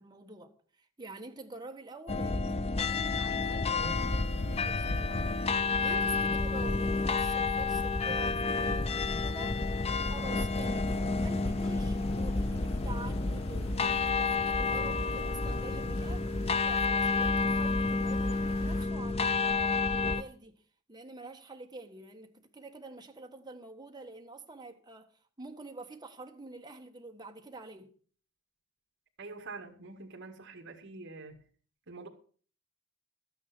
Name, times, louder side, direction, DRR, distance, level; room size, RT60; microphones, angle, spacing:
voice 1, 0.0-5.4 5.8-9.6 10.0-16.2 16.6-20.6 20.9-25.1 25.4-27.9, right 3 dB, 20° right, 1.5 m, -47 dB
sound 1, 2.1-20.2, left 4 dB, 30° left, 0.5 m, -30 dB
sound 2, 3.8-18.9, left 1 dB, 85° left, 2.2 m, -41 dB
voice 2, 29.2-31.4 31.9-32.1, right 3 dB, 60° right, 1.9 m, -45 dB
12.5 x 9.2 x 6.1 m
head